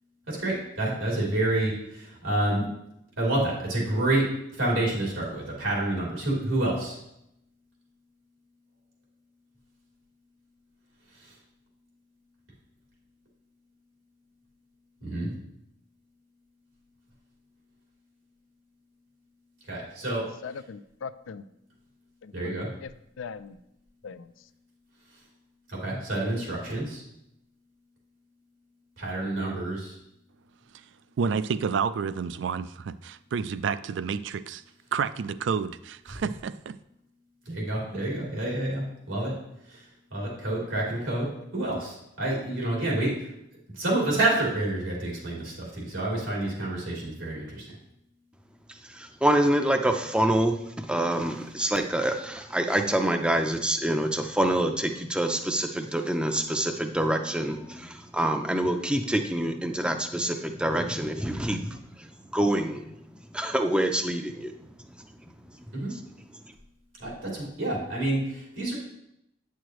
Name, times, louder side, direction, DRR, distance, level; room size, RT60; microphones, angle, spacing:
voice 1, 0.3-2.7 3.2-7.0 15.0-15.3 19.7-20.3 22.3-22.7 25.7-27.0 29.0-29.9 37.4-39.4 39.7-43.3 43.7-47.7 65.7-66.0 67.0-68.7, right 1 dB, 90° right, 3.0 m, -28 dB
voice 2, 20.4-21.5 22.2-22.9 23.2-23.6 24.0-24.5, left 5 dB, 85° left, 0.4 m, -40 dB
voice 3, 31.2-34.6 34.9-36.8, right 6 dB, 70° right, 0.3 m, -29 dB
voice 4, 48.7-62.9 63.3-64.5 64.8-65.0 65.9-66.0, right 1 dB, 5° right, 0.5 m, -26 dB
9.2 x 6.3 x 3.0 m
head